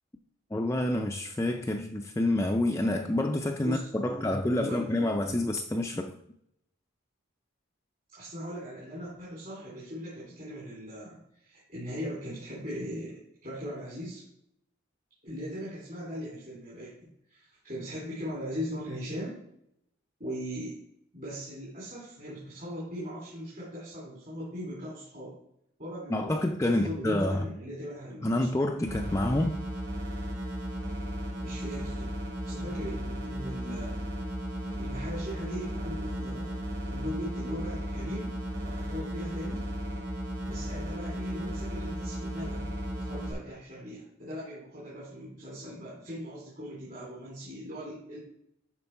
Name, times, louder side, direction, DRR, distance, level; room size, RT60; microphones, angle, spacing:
voice 1, 0.5-6.1 26.1-27.4 28.2-29.6, left 1 dB, 15° left, 0.4 m, -28 dB
voice 2, 3.5-4.9 8.1-14.2 15.2-19.4 20.2-20.7 21.1-25.3 25.8-26.4 26.7-28.5 31.4-32.1 32.4-34.0 34.8-36.6 36.9-38.3 38.6-39.7 40.4-42.7 42.9-48.2, equal, 45° right, 2.9 m, -39 dB
sound 1, 28.9-43.3, equal, 65° right, 2.7 m, -35 dB
11.0 x 4.5 x 4.5 m
head